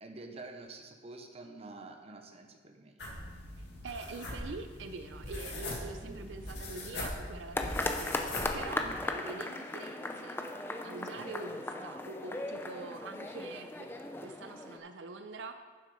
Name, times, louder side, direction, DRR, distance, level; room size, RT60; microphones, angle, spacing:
voice 1, 0.0-3.1 6.0-6.4 8.8-9.1 11.1-11.3, right 2 dB, 35° right, 4 dB, 0.8 m, -48 dB
sound 1, 3.0-9.0, left 1 dB, 65° left, 2.0 m, -41 dB
voice 2, 3.6-10.4 10.8-13.9 14.2-15.5, right 3 dB, 80° right, 8 dB, 0.5 m, -45 dB
sound 2, 7.5-14.8, left 2 dB, 10° left, 0.5 m, -37 dB
7.3 x 6.4 x 5.5 m, 1.5 s
head